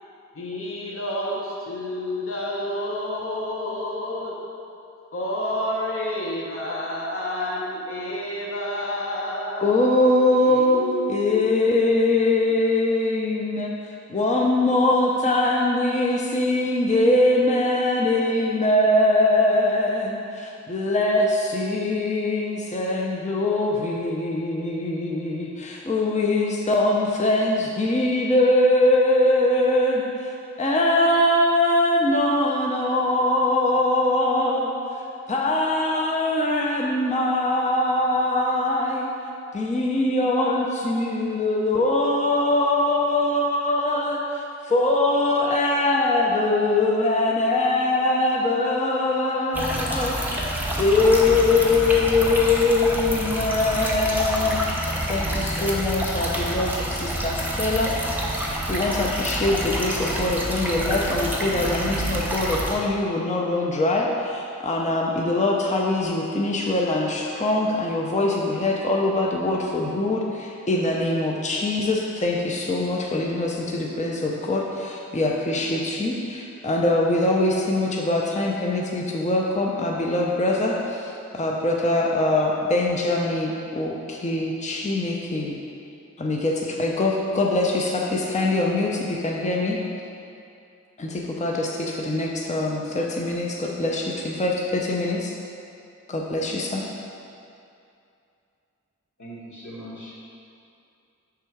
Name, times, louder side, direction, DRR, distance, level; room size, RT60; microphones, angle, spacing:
voice 1, 0.4-4.3 5.1-9.7 10.4-11.5, left 1 dB, 45° left, -3 dB, 0.9 m, -29 dB
voice 2, 9.6-13.7 14.1-34.8 35.3-39.1 39.5-54.6 55.1-57.9 58.7-85.6 86.2-89.8 91.0-95.3 96.1-96.9, left 2 dB, 25° left, -1 dB, 0.5 m, -22 dB
sound 1, 49.5-62.8, right 1 dB, 5° right, 0.9 m, -27 dB
voice 3, 99.2-100.2, equal, 75° left, -5 dB, 1.3 m, -40 dB
6.5 x 3.6 x 4.5 m, 2.6 s
wide cardioid pair, 65°, 29 cm